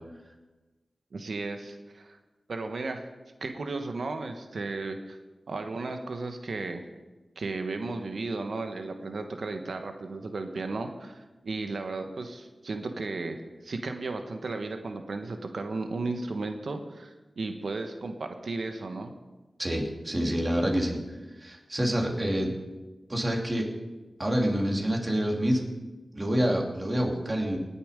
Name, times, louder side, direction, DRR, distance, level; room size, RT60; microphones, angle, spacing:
voice 1, 1.1-2.2 2.5-3.1 3.4-5.2 5.5-6.9 7.4-19.1, right 3 dB, 80° right, 6 dB, 1.1 m, -34 dB
voice 2, 19.6-21.0 21.4-22.5 23.1-23.7 24.2-25.6 26.1-27.6, equal, 30° right, 0 dB, 2.8 m, -27 dB
19.0 x 7.0 x 5.1 m, 1.2 s
wide cardioid pair, 60°, 0 cm